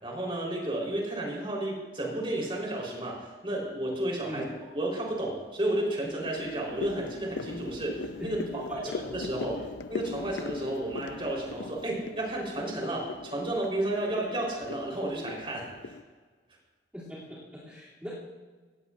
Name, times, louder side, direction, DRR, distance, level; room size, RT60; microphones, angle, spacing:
voice 1, 0.0-4.4 4.7-9.6 9.9-16.0, right 1 dB, 30° right, -2 dB, 3.9 m, -32 dB
sound 1, 4.3-4.8 5.3-16.0, left 4 dB, 90° left, 0.6 m, -41 dB
voice 2, 16.9-18.1, equal, 10° right, -11 dB, 2.8 m, -40 dB
17.5 x 16.0 x 2.5 m, 1.4 s
head